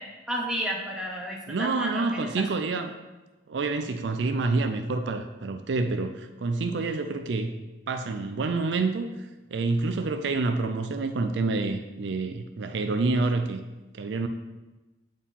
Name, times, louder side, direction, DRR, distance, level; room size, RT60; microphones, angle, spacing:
voice 1, 0.0-2.3, equal, 5° right, -2 dB, 0.9 m, -32 dB
voice 2, 1.5-2.9 3.5-7.6 7.9-9.1 9.5-13.6 13.9-14.3, right 3 dB, 65° right, 7 dB, 0.4 m, -28 dB
8.5 x 4.6 x 3.6 m, 1.1 s
head